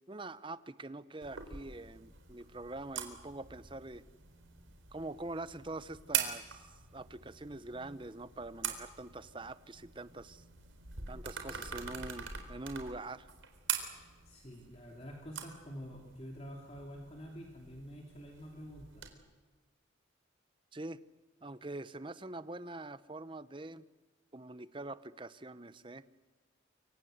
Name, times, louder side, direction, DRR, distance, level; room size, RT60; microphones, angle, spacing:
voice 1, 0.1-4.0 4.9-10.4 11.1-13.3 20.7-21.0 21.4-23.9 24.3-26.0, right 2 dB, 25° right, 15 dB, 0.8 m, -44 dB
sound 1, 1.2-19.1, right 8 dB, 75° right, 3.9 m, -43 dB
voice 2, 14.2-19.0, equal, 30° left, 1 dB, 3.1 m, -48 dB
28.0 x 24.0 x 8.0 m, 1.3 s
head